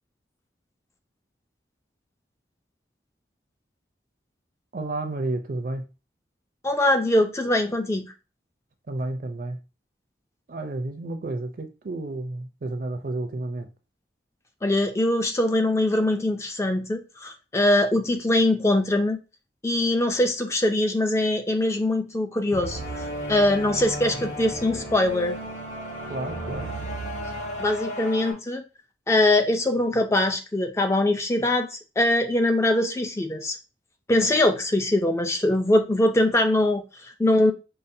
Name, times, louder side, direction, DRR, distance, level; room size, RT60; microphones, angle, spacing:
voice 1, 4.7-5.9 8.9-9.6 10.5-13.7 24.1-24.3 26.1-26.7, right 2 dB, 50° right, 0.4 m, -31 dB
voice 2, 6.6-8.1 14.6-19.2 19.6-25.4 27.6-28.6 29.1-33.6 34.1-37.5, left 1 dB, 15° left, 0.3 m, -22 dB
sound 1, 22.5-28.3, right 1 dB, 45° left, 1.1 m, -34 dB
5.3 x 2.1 x 2.6 m
head